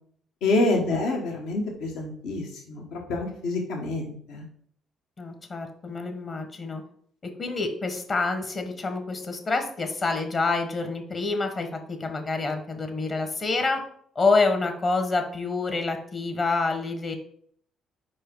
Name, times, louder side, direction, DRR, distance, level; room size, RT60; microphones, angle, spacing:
voice 1, 0.4-4.4, left 2 dB, 85° left, 1 dB, 1.4 m, -27 dB
voice 2, 5.2-6.8 7.4-13.8 14.1-17.1, left 3 dB, 45° left, 6 dB, 1.1 m, -27 dB
4.9 x 4.7 x 4.7 m, 0.62 s
supercardioid pair, 75°, 0 cm